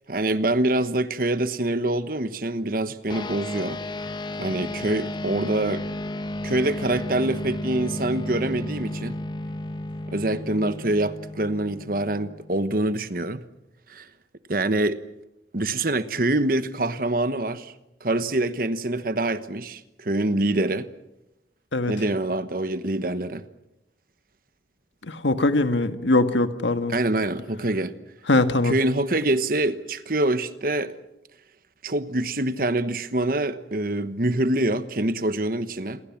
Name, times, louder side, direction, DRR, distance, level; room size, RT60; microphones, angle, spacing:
voice 1, 0.1-3.8 4.4-5.8 6.4-9.2 10.1-13.4 13.9-14.1 14.5-15.0 15.5-17.7 18.0-20.9 21.9-23.4 26.9-27.9 28.6-30.9 31.8-36.0, right 1 dB, 50° right, 1.2 m, -25 dB
sound 1, 3.1-12.8, left 1 dB, 25° left, 0.9 m, -33 dB
voice 2, 25.0-27.0 28.3-28.7, left 2 dB, 85° left, 1.7 m, -21 dB
28.5 x 22.5 x 7.3 m
head